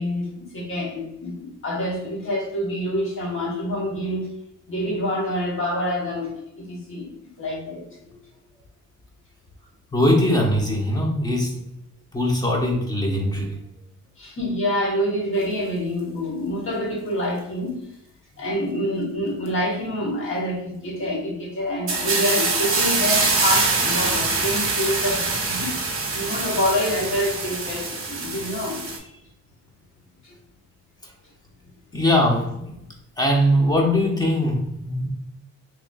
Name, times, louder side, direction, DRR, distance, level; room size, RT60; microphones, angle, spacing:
voice 1, 0.0-4.3 4.7-7.1 7.4-7.8 14.2-17.8 18.4-25.7 26.1-29.1 30.2-30.3, equal, 40° left, -2 dB, 1.1 m, -27 dB
voice 2, 9.9-11.5 12.1-13.5 31.9-32.6 33.2-35.1, left 1 dB, 15° left, 0 dB, 0.8 m, -21 dB
sound 1, 21.9-29.0, right 3 dB, 45° right, 1.0 m, -24 dB
3.8 x 3.0 x 2.4 m, 0.82 s
wide cardioid pair, 145°, 31 cm